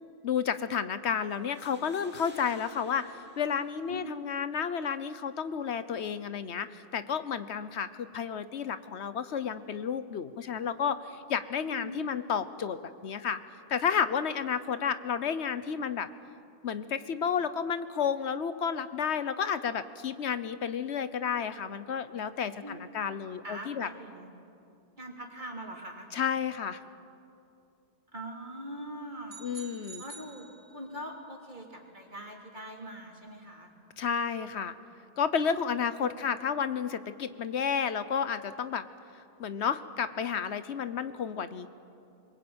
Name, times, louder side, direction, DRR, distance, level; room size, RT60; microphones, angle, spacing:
voice 1, 0.2-13.4 13.7-16.1 16.6-23.9 26.1-26.8 29.4-30.0 34.0-34.7 35.2-38.9 39.1-41.7, left 7 dB, 85° left, 12 dB, 1.2 m, -31 dB
sound 1, 1.3-4.3, right 1 dB, 10° right, 2.3 m, -56 dB
voice 2, 3.9-4.4 11.6-12.2 22.6-22.8 23.4-24.3 25.0-26.1 28.1-29.5 29.7-33.7 36.1-36.2, right 1 dB, 45° right, 0 dB, 3.4 m, -42 dB
sound 2, 29.3-31.1, right 4 dB, 80° right, 1.9 m, -48 dB
24.5 x 22.0 x 8.7 m, 2.6 s
omnidirectional pair, 1.1 m